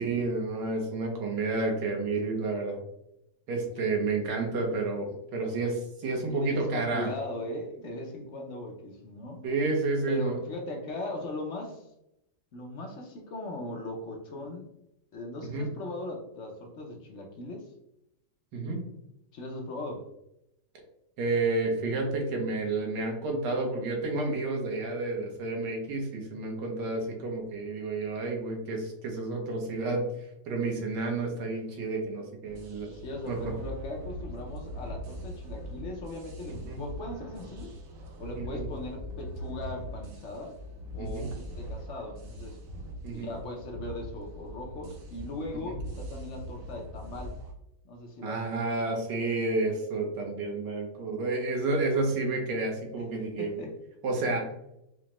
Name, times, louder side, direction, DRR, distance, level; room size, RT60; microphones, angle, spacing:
voice 1, 0.0-2.8 3.5-7.1 9.4-10.4 15.4-15.7 18.5-18.8 21.2-32.9 33.3-33.4 36.5-36.8 38.4-38.7 41.0-41.3 43.0-43.3 45.7-45.8 48.2-53.6 54.0-54.5, right 3 dB, 90° right, 1 dB, 1.5 m, -30 dB
voice 2, 6.5-9.4 10.1-11.9 12.5-14.7 15.1-17.7 19.3-20.0 32.9-37.8 38.2-40.5 40.9-42.6 43.1-47.4 47.8-49.0 53.4-53.7, left 2 dB, 65° left, 0 dB, 0.7 m, -39 dB
sound 1, 32.4-47.5, right 1 dB, 60° right, 1.1 m, -41 dB
4.8 x 2.1 x 2.9 m, 0.83 s
omnidirectional pair, 1.8 m